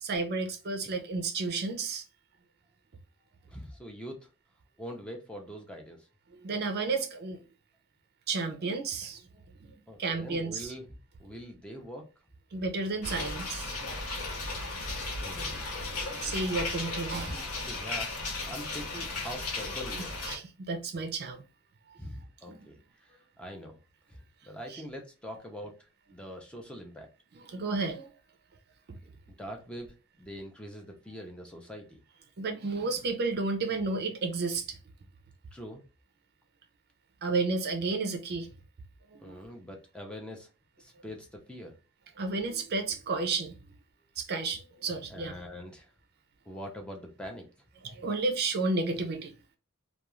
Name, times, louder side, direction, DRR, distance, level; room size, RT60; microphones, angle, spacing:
voice 1, 0.0-2.0 6.3-7.4 8.3-9.2 9.6-9.7 10.0-10.7 12.5-14.0 15.8-17.4 20.2-21.4 22.5-22.6 23.4-23.5 24.7-24.8 27.3-28.1 28.9-29.0 32.4-34.8 37.2-38.5 39.1-39.4 42.2-43.6 44.2-45.3 47.8-49.3, right 3 dB, 45° right, 0.5 m, -32 dB
voice 2, 3.5-4.3 4.8-6.0 9.9-10.9 11.2-12.1 15.2-15.7 17.3-20.2 22.0-23.8 24.1-24.2 24.5-25.7 26.1-27.1 29.4-32.0 35.5-35.8 39.2-40.5 40.8-41.7 45.1-45.9 46.5-47.4, equal, 5° left, 0.5 m, -43 dB
sound 1, 13.0-20.4, left 3 dB, 75° left, 0.9 m, -35 dB
2.3 x 2.3 x 3.0 m
head